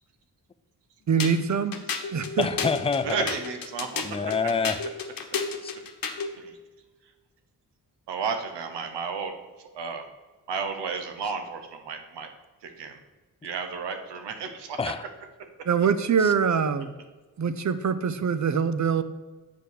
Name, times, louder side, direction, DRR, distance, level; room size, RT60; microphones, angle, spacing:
voice 1, 1.1-1.8 2.1-2.5 15.7-16.9 17.4-19.0, right 6 dB, 45° right, 12 dB, 0.8 m, -24 dB
sound 1, 1.2-6.4, left 5 dB, 55° left, 1.2 m, -32 dB
voice 2, 2.4-3.3 4.0-4.8 5.6-5.7 14.8-15.0 16.2-16.3, left 5 dB, 15° left, 11 dB, 0.5 m, -27 dB
voice 3, 3.0-4.2 6.4-6.6 8.1-9.3 9.6-10.1 10.5-12.3 12.6-13.0 13.4-14.8, right 5 dB, 85° right, 6 dB, 1.1 m, -32 dB
6.6 x 5.1 x 6.7 m, 1.3 s
cardioid pair, 50°, 40 cm